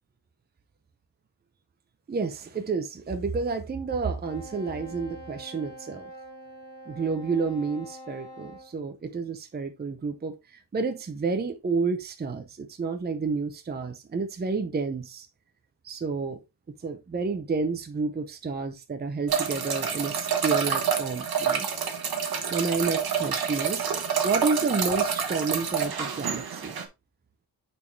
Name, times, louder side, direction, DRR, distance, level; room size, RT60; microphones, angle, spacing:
voice 1, 2.1-6.0 6.9-15.3 15.8-16.4 16.8-21.7 22.5-26.8, right 4 dB, 25° right, 0.6 m, -30 dB
Wind instrument woodwind instrument, 4.2-8.7, right 1 dB, 20° left, 4.7 m, -45 dB
sound 1, 19.3-26.8, right 7 dB, 60° right, 1.4 m, -28 dB
8.8 x 4.3 x 3.2 m
wide cardioid pair, 170°, 42 cm